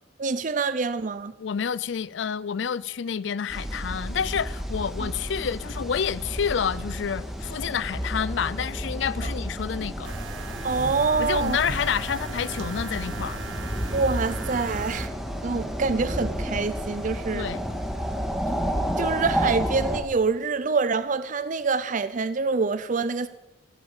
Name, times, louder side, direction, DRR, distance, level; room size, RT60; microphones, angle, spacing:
voice 1, 0.2-1.3 5.0-5.1 10.6-11.6 13.9-15.1 15.4-17.5 18.5-18.6 19.0-23.3, right 4 dB, 40° right, 0.5 m, -26 dB
voice 2, 1.4-10.1 11.2-13.4 17.3-17.6, left 7 dB, 70° left, 0.4 m, -29 dB
sound 1, 3.5-20.0, equal, ahead, 1.9 m, -31 dB
sound 2, 10.0-15.1, right 4 dB, 85° right, 1.1 m, -37 dB
15.5 x 10.0 x 7.2 m
head